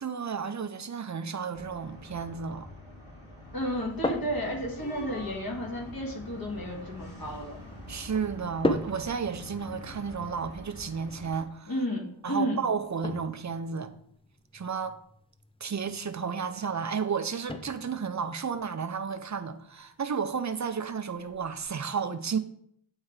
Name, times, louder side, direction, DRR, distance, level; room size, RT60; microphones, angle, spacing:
voice 1, 0.0-2.7 7.9-11.7 12.2-13.9 14.5-15.0 15.6-22.4, right 6 dB, 35° right, 0.6 m, -32 dB
sound 1, 1.5-11.4, left 1 dB, 75° left, 2.8 m, -45 dB
voice 2, 3.5-7.6 11.7-12.7, equal, 45° left, 1.8 m, -32 dB
sound 2, 3.6-21.7, left 2 dB, 10° left, 0.5 m, -40 dB
8.8 x 3.5 x 3.2 m
wide cardioid pair, 55°, 48 cm